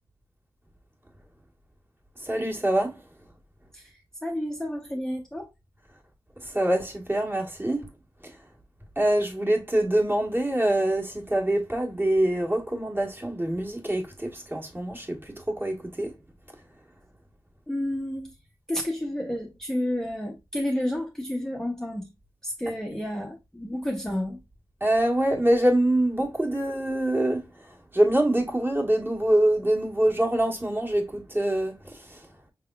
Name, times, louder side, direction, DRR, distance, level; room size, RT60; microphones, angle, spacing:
voice 1, 2.2-3.0 6.4-7.9 9.0-16.1 24.8-27.5 27.9-32.2, right 1 dB, 20° right, 1.4 m, -25 dB
voice 2, 4.2-5.5 17.7-18.3 18.7-22.1 22.4-24.4, left 1 dB, 5° left, 0.7 m, -30 dB
5.6 x 3.4 x 2.3 m
wide cardioid pair, 100°, 10 cm